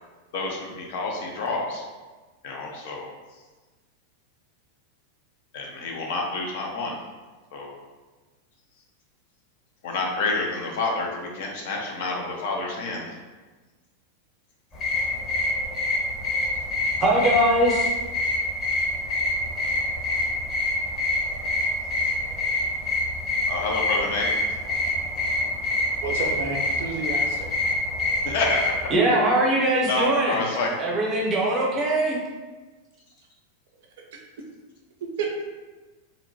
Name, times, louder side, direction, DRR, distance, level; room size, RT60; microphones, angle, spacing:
voice 1, 0.3-1.8 2.4-3.1 5.5-7.0 7.5-7.7 9.8-13.2 23.5-24.6 28.2-28.9 29.6-30.7, left 3 dB, 50° left, -1 dB, 0.5 m, -28 dB
sound 1, 14.7-28.9, left 2 dB, 20° left, 0.7 m, -26 dB
voice 2, 17.0-17.9 28.9-30.4 30.8-32.2, right 1 dB, 30° right, -3 dB, 0.7 m, -21 dB
voice 3, 26.0-27.7 35.2-35.5, right 4 dB, 55° right, 0 dB, 0.4 m, -30 dB
2.9 x 2.1 x 2.7 m, 1.3 s
figure-of-eight pair, 90°, 0 cm